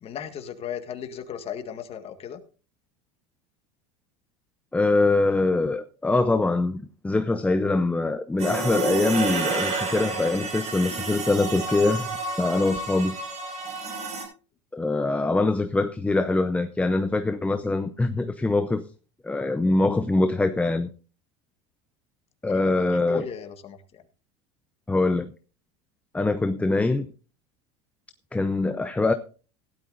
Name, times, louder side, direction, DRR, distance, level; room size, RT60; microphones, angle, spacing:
voice 1, 0.0-2.4 22.5-24.0, left 8 dB, 40° left, 1.8 m, -36 dB
voice 2, 4.7-13.2 14.7-18.9 19.2-20.9 22.4-23.3 24.9-25.3 26.1-27.1 28.3-29.1, left 2 dB, 10° left, 0.7 m, -23 dB
sound 1, 8.4-14.2, right 3 dB, 45° right, 6.2 m, -30 dB
17.0 x 12.0 x 2.6 m
supercardioid pair, 110°, 16 cm